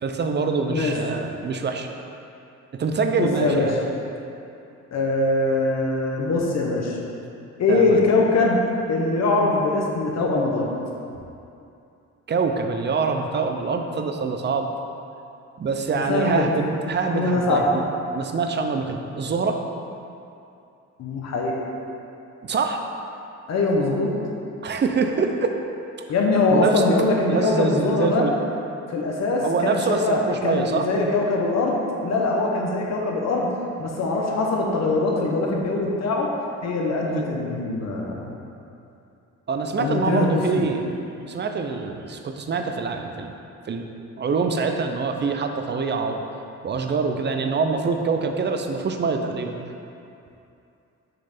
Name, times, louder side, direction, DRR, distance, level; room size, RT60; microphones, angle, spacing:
voice 1, 0.0-1.9 2.8-3.8 7.7-8.0 12.3-14.7 15.6-17.8 18.1-19.6 22.4-22.8 24.6-25.5 26.5-26.8 27.3-28.3 29.4-30.8 37.1-37.3 39.5-40.8 41.3-43.3 43.6-43.8 44.2-46.2 46.6-49.5, right 4 dB, 35° right, 5 dB, 0.6 m, -25 dB
voice 2, 3.2-3.7 4.9-7.0 7.6-8.6 8.9-10.7 15.9-16.5 17.1-17.7 21.0-21.5 23.5-24.1 26.1-28.2 28.9-33.5 33.8-36.3 36.6-38.3 39.8-40.6, left 2 dB, 60° left, -1 dB, 1.0 m, -22 dB
6.7 x 3.2 x 5.9 m, 2.7 s
cardioid pair, 90°, 30 cm